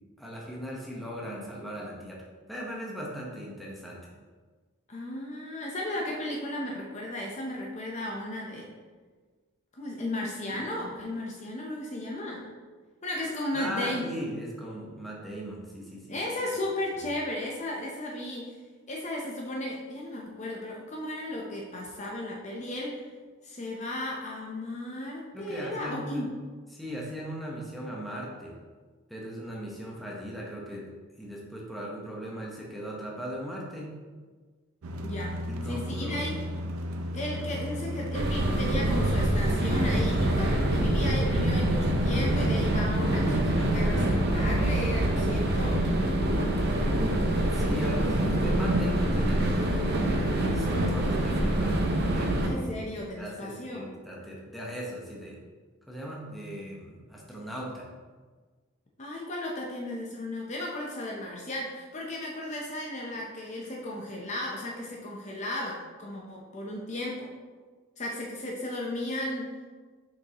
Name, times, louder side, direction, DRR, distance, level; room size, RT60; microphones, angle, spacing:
voice 1, 0.2-4.1 10.5-10.8 13.5-16.2 25.3-26.3 26.7-28.6 29.1-30.9 31.2-33.9 35.5-36.3 47.1-51.8 52.1-52.6 53.2-55.4 55.9-57.9, equal, ahead, -4 dB, 1.0 m, -38 dB
voice 2, 4.9-8.7 9.7-12.5 13.0-14.2 16.1-18.6 18.9-23.0 23.4-26.4 35.0-36.4 37.1-45.9 52.4-53.9 59.0-67.3 68.0-69.5, left 1 dB, 30° left, -2 dB, 0.7 m, -35 dB
sound 1, 34.8-45.4, left 1 dB, 85° right, 0.6 m, -35 dB
sound 2, 38.1-52.5, right 1 dB, 50° right, 0.8 m, -25 dB
6.8 x 5.3 x 2.9 m, 1.4 s
head